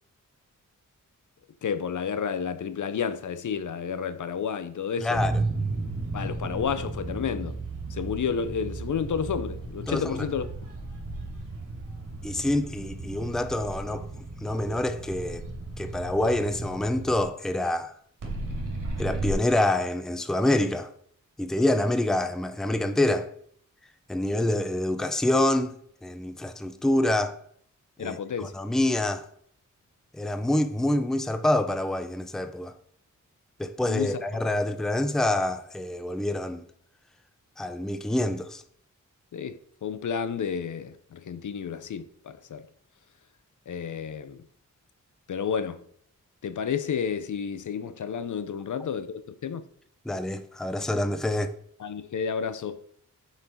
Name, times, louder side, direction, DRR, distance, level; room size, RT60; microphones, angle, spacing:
voice 1, 1.6-5.2 6.1-7.6 7.9-10.5 28.0-28.5 33.9-34.2 39.3-42.7 43.7-44.4 45.3-45.8 46.4-49.7 51.8-52.9, left 7 dB, 65° left, 0.6 m, -31 dB
voice 2, 5.0-5.3 9.9-10.3 12.2-15.4 15.8-17.9 19.0-20.9 21.4-23.3 24.1-25.8 26.0-27.4 28.0-29.2 30.1-32.7 33.6-36.6 37.6-38.6 50.1-51.5, left 1 dB, ahead, 0.5 m, -26 dB
sound 1, 5.1-17.2 18.2-19.3, right 2 dB, 70° right, 2.6 m, -34 dB
7.0 x 5.7 x 4.4 m
wide cardioid pair, 110°, 32 cm